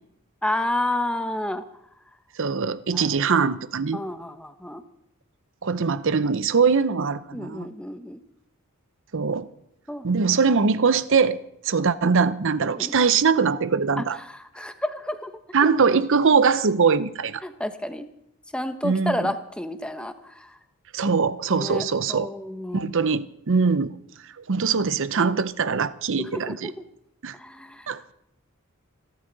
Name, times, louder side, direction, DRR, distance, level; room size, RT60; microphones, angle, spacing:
voice 1, 0.4-1.6 2.9-3.1 3.9-4.8 7.3-8.2 9.9-10.0 12.0-12.2 12.7-12.9 14.0-15.3 17.4-18.1 18.5-20.6 21.5-22.9 26.2-26.8 27.4-27.9, left 1 dB, 5° left, 1.0 m, -30 dB
voice 2, 2.4-4.0 5.6-7.7 9.1-9.5 10.0-14.2 15.5-17.4 18.8-19.3 20.9-22.3 22.7-23.9 24.5-26.7 27.2-27.3 27.9-28.1, right 5 dB, 60° right, 0.7 m, -22 dB
26.5 x 12.5 x 4.0 m
head